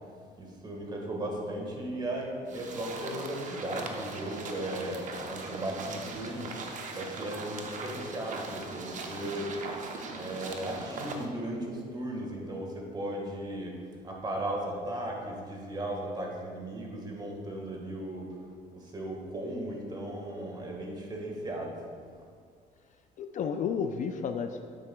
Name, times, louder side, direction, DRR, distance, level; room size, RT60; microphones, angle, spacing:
voice 1, 0.4-6.5 6.9-9.6 10.1-13.8 14.0-18.3 18.7-21.8, right 1 dB, 25° right, 0 dB, 1.5 m, -36 dB
sound 1, 2.5-11.3, right 3 dB, 50° right, 0.8 m, -40 dB
voice 2, 6.2-6.6 23.2-24.6, left 6 dB, 50° left, 7 dB, 0.4 m, -32 dB
9.2 x 7.9 x 2.3 m, 2.1 s
cardioid pair, 110°, 17 cm